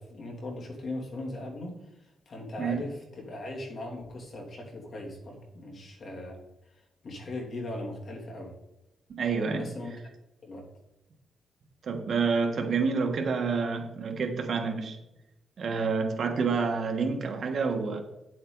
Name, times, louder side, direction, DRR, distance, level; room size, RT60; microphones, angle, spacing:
voice 1, 0.0-8.6 9.5-10.1 10.4-10.7, left 2 dB, 45° left, 0 dB, 2.7 m, -39 dB
voice 2, 9.1-9.7 11.8-15.0 15.6-18.0, right 5 dB, 50° right, 4 dB, 1.4 m, -28 dB
9.7 x 7.7 x 4.0 m, 0.92 s
cardioid pair, 135°, 0 cm